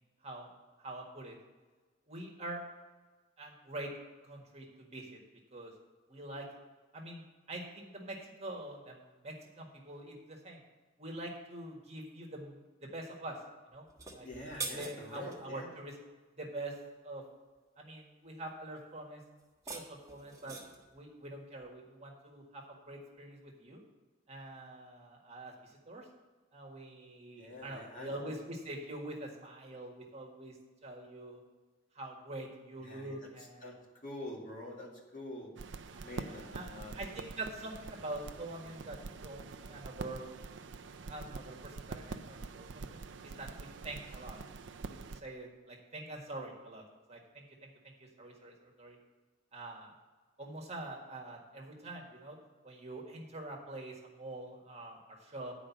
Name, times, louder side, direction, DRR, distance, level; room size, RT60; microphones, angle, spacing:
voice 1, 0.8-1.4 2.1-2.6 3.4-3.9 4.2-5.2 5.5-5.7 6.1-6.5 6.9-10.6 11.0-13.4 13.7-13.8 14.1-14.3 14.6-15.9 16.4-16.8 17.0-17.2 17.8-19.2 19.7-20.6 20.9-23.8 24.3-26.1 26.5-31.4 32.0-33.7 35.9-40.3 41.1-42.8 43.2-44.4 44.9-46.8 47.1-47.7 48.0-49.0 49.5-49.9 50.4-52.4 52.6-55.5, right 1 dB, 35° right, 0 dB, 1.7 m, -45 dB
sound 1, 13.9-15.4 19.4-20.9, right 3 dB, 15° right, 1.2 m, -44 dB
voice 2, 14.2-15.8 27.4-28.3 32.8-33.2 33.6-33.7 34.0-35.5 36.0-37.0, left 1 dB, 40° left, -3 dB, 2.3 m, -45 dB
sound 2, 35.6-45.2, right 4 dB, 60° right, 0.4 m, -45 dB
9.9 x 5.1 x 7.2 m, 1.3 s
head